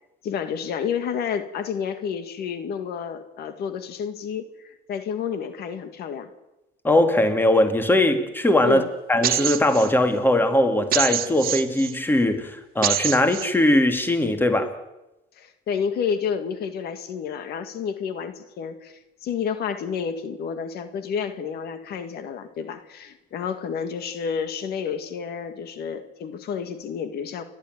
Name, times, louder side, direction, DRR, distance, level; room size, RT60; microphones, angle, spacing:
voice 1, 0.2-6.3 8.6-8.9 15.4-27.4, left 7 dB, 70° left, 2.0 m, -30 dB
voice 2, 6.8-8.8 9.1-14.7, left 1 dB, 10° left, 2.4 m, -20 dB
sound 1, 9.2-9.9 10.9-11.9 12.8-13.5, right 11 dB, 60° right, 1.5 m, -25 dB
29.5 x 12.0 x 9.3 m
cardioid pair, 110°, 17 cm